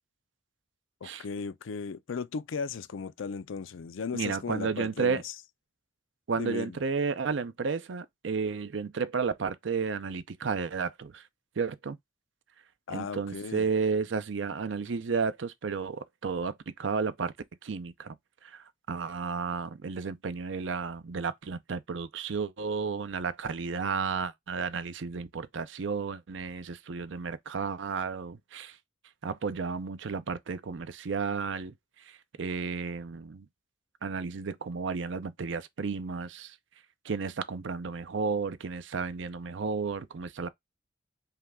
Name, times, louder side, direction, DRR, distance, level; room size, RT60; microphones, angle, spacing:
voice 1, 1.0-5.3 6.4-6.8 12.9-13.7, left 5 dB, 80° left, 0.4 m, -36 dB
voice 2, 4.1-5.2 6.3-11.2 11.6-12.0 12.9-16.5 16.8-17.3 17.6-18.2 18.4-28.8 29.2-31.7 32.1-33.5 34.0-36.6 37.0-40.5, right 5 dB, 65° right, 0.5 m, -32 dB
5.5 x 2.3 x 3.5 m
head